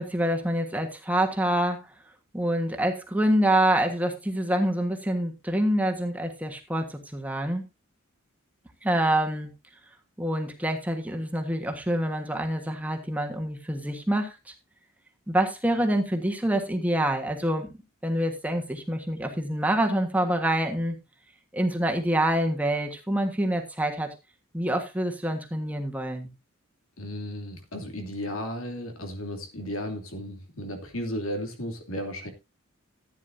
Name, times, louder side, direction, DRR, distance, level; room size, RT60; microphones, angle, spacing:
voice 1, 0.0-1.9 2.3-7.6 8.8-9.5 10.2-14.5 15.3-17.7 18.0-21.0 21.5-24.1 24.5-26.3, right 1 dB, 5° right, 3 dB, 1.5 m, -26 dB
voice 2, 27.0-32.3, equal, 80° left, 4 dB, 2.8 m, -34 dB
15.0 x 9.6 x 2.7 m, 0.24 s
head